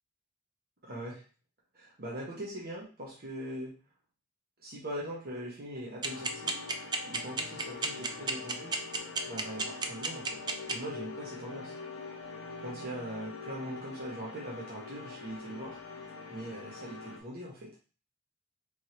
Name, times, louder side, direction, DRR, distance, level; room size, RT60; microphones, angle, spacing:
voice 1, 0.8-1.2 1.7-3.7 4.6-6.5 7.0-8.8 9.3-11.8 12.6-15.8 16.3-17.7, right 1 dB, 50° right, -4 dB, 0.9 m, -41 dB
sound 1, 6.0-17.2, left 4 dB, 85° left, 0.7 m, -44 dB
sound 2, 6.0-10.7, right 4 dB, 20° right, 0.3 m, -30 dB
3.5 x 3.2 x 2.8 m, 0.37 s
head